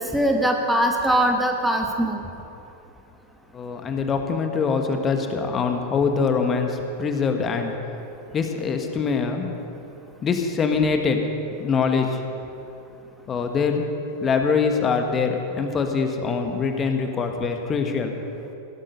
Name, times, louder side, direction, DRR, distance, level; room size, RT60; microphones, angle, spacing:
voice 1, 0.0-2.2, right 1 dB, 5° right, 2 dB, 1.3 m, -21 dB
voice 2, 3.5-7.7 8.3-9.6 10.2-11.3 11.6-12.2 13.3-13.9 14.2-18.2, left 5 dB, 25° left, 5 dB, 1.5 m, -23 dB
16.5 x 12.0 x 5.4 m, 2.7 s
figure-of-eight pair, 90°, 0 cm